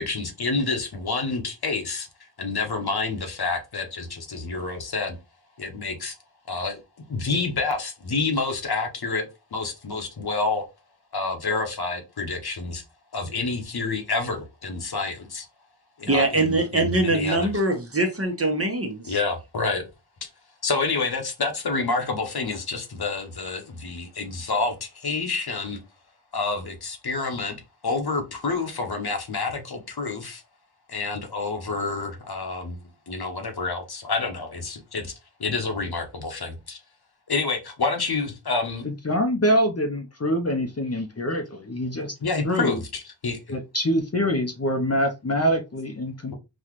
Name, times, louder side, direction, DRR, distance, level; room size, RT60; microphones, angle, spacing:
voice 1, 0.0-2.1 2.4-5.2 5.6-6.2 6.5-6.8 7.1-10.7 11.1-12.8 13.1-15.5 16.0-17.5 19.1-19.8 20.6-25.8 26.3-27.6 27.8-30.4 30.9-32.8 33.1-35.1 35.4-36.8 37.3-38.9 42.2-43.6, left 3 dB, 60° left, 1.0 m, -28 dB
voice 2, 16.1-19.2, right 2 dB, 30° right, 1.0 m, -23 dB
voice 3, 39.0-42.1 42.4-42.8 43.5-46.3, equal, 35° left, 0.7 m, -25 dB
4.1 x 2.4 x 3.0 m
cardioid pair, 45°, 44 cm